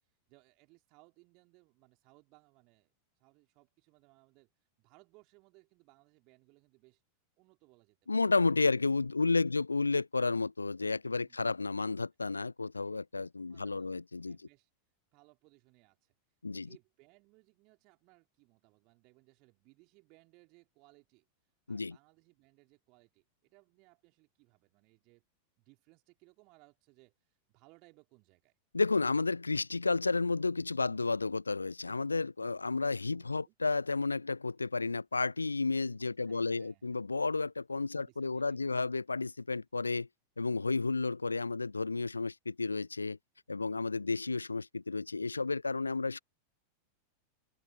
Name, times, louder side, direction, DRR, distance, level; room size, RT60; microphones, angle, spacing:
voice 1, 0.0-7.0 7.4-8.0 8.7-8.8 9.2-9.6 11.3-11.4 13.5-14.0 14.3-14.7 15.1-25.2 25.6-28.6 33.1-33.5 36.2-37.2 37.9-38.8, right 27 dB, 40° right, 3.2 m, -65 dB
voice 2, 8.1-14.4 16.4-16.7 21.7-22.0 28.7-40.1 40.4-43.2 43.5-46.2, left 3 dB, 80° left, 0.3 m, -32 dB
figure-of-eight pair, 90°, 0 cm